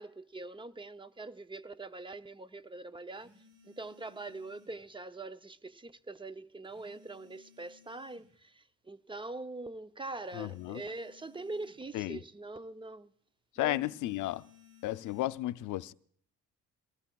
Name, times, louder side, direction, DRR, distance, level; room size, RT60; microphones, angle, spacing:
voice 1, 0.0-3.3 3.7-13.1 13.6-13.8, right 2 dB, 15° right, 0.5 m, -43 dB
sound 1, 3.1-4.9 6.6-8.4 10.2-11.9 13.7-15.3, left 4 dB, 85° right, 4.5 m, -61 dB
voice 2, 10.3-10.8 11.9-12.2 13.6-14.4 14.8-15.9, left 16 dB, 80° left, 0.5 m, -33 dB
23.5 x 19.0 x 2.3 m
cardioid pair, 90°, 30 cm